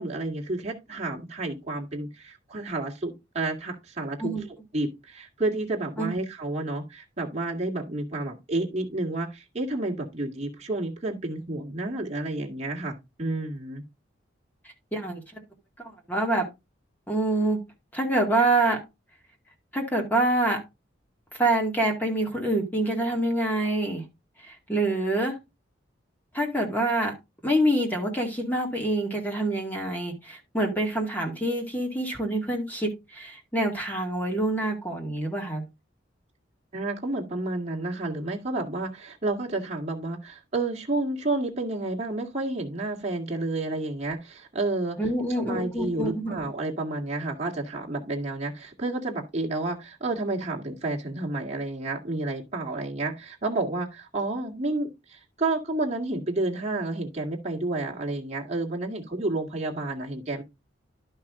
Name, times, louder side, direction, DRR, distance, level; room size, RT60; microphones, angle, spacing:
voice 1, 0.0-4.3 4.7-13.8 36.7-45.0 45.4-60.4, right 2 dB, 35° right, 2.1 m, -30 dB
voice 2, 14.9-15.2 16.1-16.5 17.1-17.6 17.9-18.8 19.7-20.6 21.4-24.0 24.4-25.4 26.3-27.1 27.4-35.6 45.0-46.3, right 1 dB, 10° left, 2.2 m, -26 dB
11.5 x 5.7 x 3.7 m
head